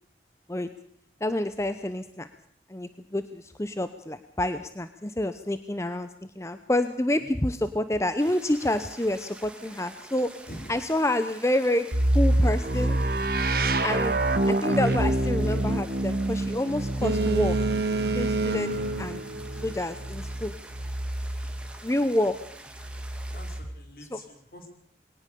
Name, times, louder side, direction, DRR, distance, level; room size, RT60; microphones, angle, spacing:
voice 1, 1.2-2.3 2.7-6.1 6.4-10.3 10.7-11.9 12.1-13.0 13.8-14.2 14.5-17.6 18.1-19.2 19.6-20.5 21.8-22.4 24.1-24.2, left 1 dB, 15° left, 11 dB, 0.8 m, -28 dB
sound 1, 8.2-23.6, right 2 dB, 5° right, 2.5 m, -47 dB
sound 2, 11.9-21.7 22.7-23.8, right 1 dB, 55° right, 1.8 m, -27 dB
Boat Water vehicle, 17.0-20.1, right 3 dB, 70° right, 1.8 m, -29 dB
voice 2, 23.3-24.7, equal, 55° left, 4 dB, 4.9 m, -45 dB
22.0 x 18.5 x 6.8 m, 0.62 s
head